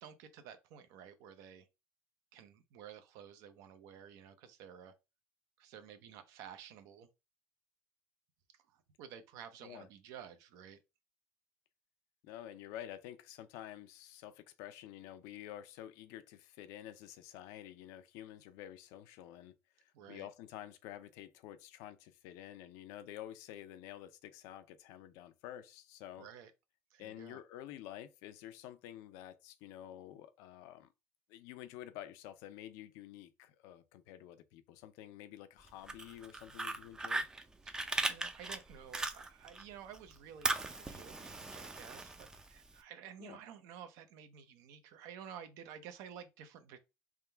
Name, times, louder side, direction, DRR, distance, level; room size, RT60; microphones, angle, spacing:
voice 1, 0.0-1.7 2.3-4.9 5.6-7.1 8.5-10.8 19.9-20.3 26.2-26.5 26.9-27.4 37.6-46.8, right 8 dB, 70° right, 0.7 m, -52 dB
voice 2, 12.2-26.3 27.0-30.9 31.3-37.3 43.2-43.4, left 12 dB, 75° left, 0.5 m, -50 dB
Fire, 35.7-39.6 39.9-42.7, right 2 dB, 10° right, 0.4 m, -38 dB
3.6 x 2.3 x 4.3 m
cardioid pair, 130°, 6 cm